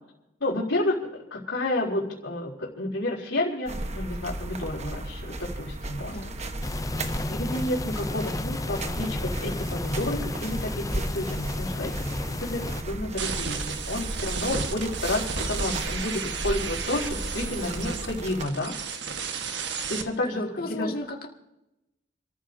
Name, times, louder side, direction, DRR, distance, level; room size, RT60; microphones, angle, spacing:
voice 1, 0.4-1.0 1.3-6.1 7.3-18.7 19.9-20.9, left 1 dB, 80° left, -7 dB, 4.0 m, -30 dB
sound 1, 3.7-18.4, right 1 dB, 35° right, 1.2 m, -35 dB
sound 2, 6.6-12.8, left 2 dB, 20° left, 0.4 m, -33 dB
sound 3, 13.2-20.0, right 5 dB, 65° right, 1.5 m, -33 dB
voice 2, 20.6-21.3, left 2 dB, 55° left, 1 dB, 2.0 m, -34 dB
30.0 x 14.0 x 2.7 m, 0.92 s
head